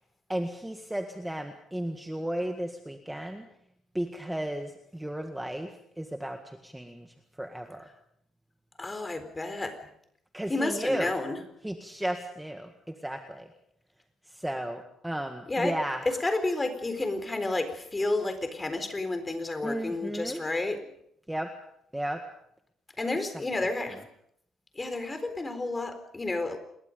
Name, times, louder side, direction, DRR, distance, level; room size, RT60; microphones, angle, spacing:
voice 1, 0.3-3.4 3.9-5.7 6.0-7.1 7.4-7.8 10.3-11.1 11.6-12.7 13.0-13.5 14.3-16.0 19.6-20.4 21.3-21.5 21.9-22.2 23.0-23.2, right 1 dB, 5° right, 5 dB, 1.8 m, -34 dB
voice 2, 8.8-9.9 10.5-11.4 15.5-15.8 16.0-20.9 23.0-24.0 24.7-26.6, left 2 dB, 15° left, 8 dB, 4.1 m, -31 dB
27.5 x 22.0 x 5.3 m, 0.71 s
cardioid pair, 125°, 0 cm